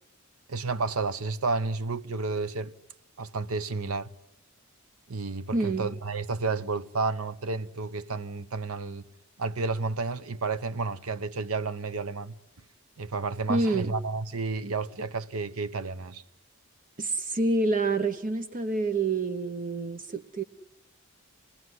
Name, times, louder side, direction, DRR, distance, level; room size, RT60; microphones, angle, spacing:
voice 1, 0.5-2.7 3.2-4.1 5.1-9.1 9.4-12.4 13.0-16.2, right 4 dB, 75° right, 0.8 m, -31 dB
voice 2, 5.5-5.9 13.5-13.9 17.0-20.4, right 3 dB, 40° right, 0.8 m, -27 dB
27.5 x 19.5 x 9.5 m
head